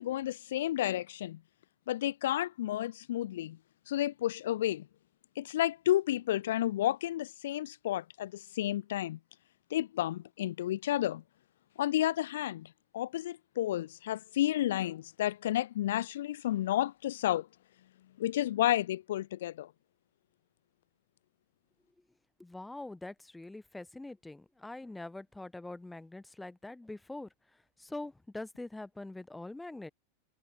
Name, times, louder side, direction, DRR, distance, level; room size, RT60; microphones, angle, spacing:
voice 1, 0.0-1.4 1.9-3.6 3.9-4.9 5.4-9.2 9.7-11.2 11.8-17.5 18.2-19.7, left 13 dB, 60° left, 0.4 m, -31 dB
voice 2, 22.4-27.3 27.8-29.9, left 2 dB, 5° left, 1.0 m, -44 dB
figure-of-eight pair, 90°, 0 cm